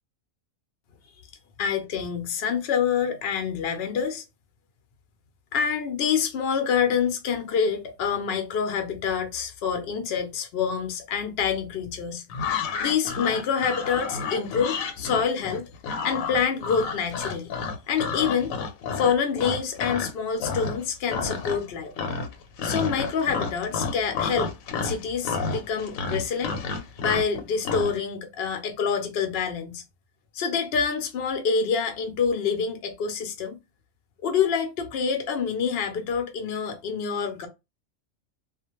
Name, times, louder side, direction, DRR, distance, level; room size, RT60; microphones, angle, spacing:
voice 1, 1.6-4.2 5.5-12.2 12.8-15.6 16.0-17.5 17.9-18.6 18.9-21.9 22.6-24.5 24.8-26.5 27.0-29.8 30.3-33.6 34.2-37.5, left 6 dB, 60° left, 0.6 m, -26 dB
sound 1, 12.3-20.1 20.4-20.8 21.1-21.7 22.0-27.9, left 5 dB, 80° left, 1.0 m, -30 dB
2.4 x 2.2 x 2.9 m
omnidirectional pair, 1.4 m